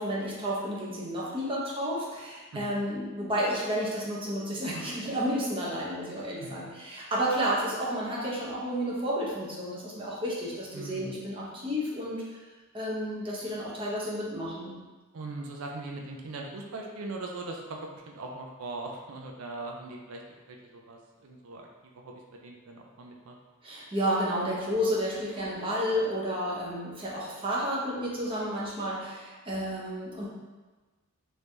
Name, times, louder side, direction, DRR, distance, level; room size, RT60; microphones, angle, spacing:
voice 1, 0.0-12.2 12.7-14.8 23.6-30.3, equal, 25° right, -5 dB, 0.7 m, -31 dB
voice 2, 10.7-11.2 15.1-21.7 21.9-23.4, right 2 dB, 90° right, 1 dB, 0.4 m, -40 dB
3.2 x 2.7 x 3.3 m, 1.3 s
head